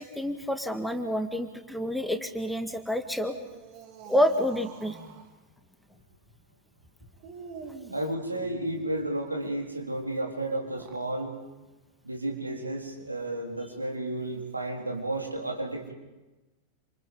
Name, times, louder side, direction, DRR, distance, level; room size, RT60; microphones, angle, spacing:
voice 1, 0.0-3.3 4.1-5.0, equal, ahead, 6 dB, 1.9 m, -28 dB
sound 1, 3.0-5.3 7.2-9.0 10.6-11.1, right 5 dB, 45° right, 3.0 m, -46 dB
voice 2, 7.9-11.3 12.0-15.9, right 1 dB, 85° right, 1 dB, 3.7 m, -32 dB
28.5 x 27.0 x 5.4 m, 1.1 s
figure-of-eight pair, 90°, 0 cm